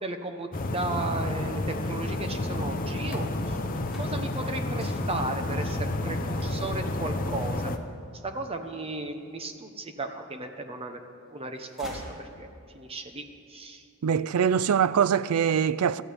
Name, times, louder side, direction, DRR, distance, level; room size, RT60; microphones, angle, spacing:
voice 1, 0.0-7.7 8.2-11.0 11.3-13.8, right 2 dB, 25° right, 0.9 m, -35 dB
sound 1, 0.5-7.8, left 2 dB, 40° left, 0.7 m, -30 dB
sound 2, 3.8-9.5 10.1-10.9 11.2-12.8, equal, ahead, 3.4 m, -49 dB
voice 2, 14.0-16.0, right 7 dB, 75° right, 0.4 m, -23 dB
24.0 x 14.5 x 3.5 m
head